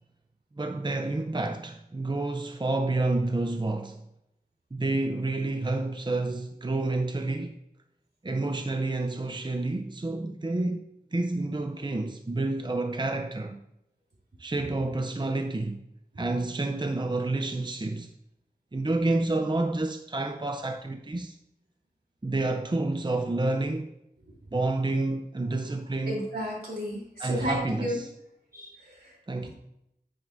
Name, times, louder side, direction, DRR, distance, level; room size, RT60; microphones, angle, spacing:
voice 1, 0.6-4.0 4.7-7.6 8.2-10.9 11.1-13.6 14.4-15.8 16.2-18.1 18.7-21.4 22.2-23.9 24.5-26.2 27.2-28.1 29.3-29.5, right 2 dB, 30° right, 0.6 m, -29 dB
voice 2, 26.1-28.0 28.5-29.1, equal, 80° right, 3.4 m, -33 dB
9.3 x 8.7 x 2.6 m
wide cardioid pair, 50°, 16 cm